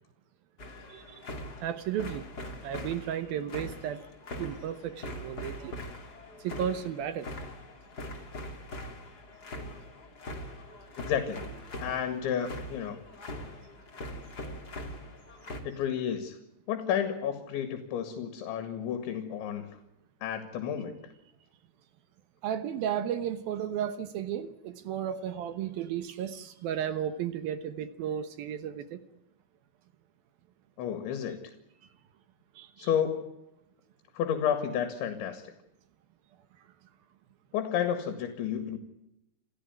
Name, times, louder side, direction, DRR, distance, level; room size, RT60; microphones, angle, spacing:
sound 1, 0.6-15.6, left 1 dB, 25° left, 2.8 m, -42 dB
voice 1, 0.9-1.3 1.6-2.2 2.6-4.0 4.4-5.7 6.4-7.3 10.7-10.8 22.4-29.0 32.6-32.9, right 9 dB, 70° right, 12 dB, 2.5 m, -34 dB
voice 2, 11.0-11.4 11.8-13.0 15.6-16.4 16.7-19.8 20.2-21.0 30.8-31.5 32.8-33.3 34.2-35.5 37.5-38.8, left 8 dB, 75° left, 9 dB, 4.2 m, -31 dB
28.0 x 15.0 x 9.5 m, 0.87 s
omnidirectional pair, 5.4 m